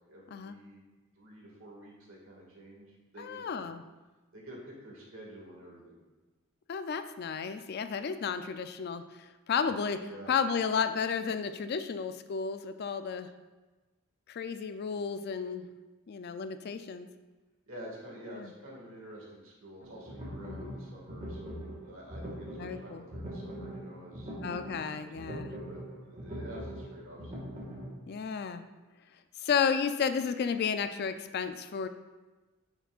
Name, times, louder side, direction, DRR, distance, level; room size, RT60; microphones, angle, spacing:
voice 1, 0.1-0.8 1.2-3.6 4.3-6.0 10.1-10.3 17.7-24.3 25.0-27.3, right 1 dB, 65° right, -2 dB, 1.9 m, -49 dB
voice 2, 3.2-3.8 6.7-13.3 14.3-15.7 16.1-17.1 18.3-18.5 20.4-20.8 22.6-23.0 24.4-25.5 28.1-28.6 29.4-31.9, left 6 dB, 50° left, 10 dB, 0.4 m, -32 dB
sound 1, 19.8-27.9, equal, 35° right, 1.6 m, -42 dB
9.4 x 5.9 x 2.4 m, 1.2 s
head